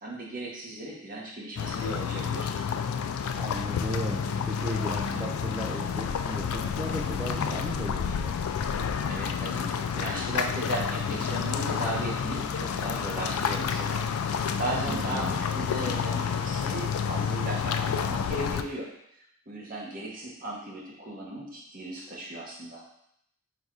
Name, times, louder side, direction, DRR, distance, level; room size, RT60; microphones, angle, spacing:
voice 1, 0.0-2.5 9.1-18.9 19.5-22.8, right 1 dB, 40° right, -4 dB, 1.0 m, -36 dB
sound 1, 1.6-18.6, left 6 dB, 80° left, 0.3 m, -30 dB
voice 2, 3.4-8.3 14.9-15.4, right 1 dB, 10° right, -5 dB, 0.3 m, -37 dB
4.0 x 2.6 x 4.6 m, 0.74 s
head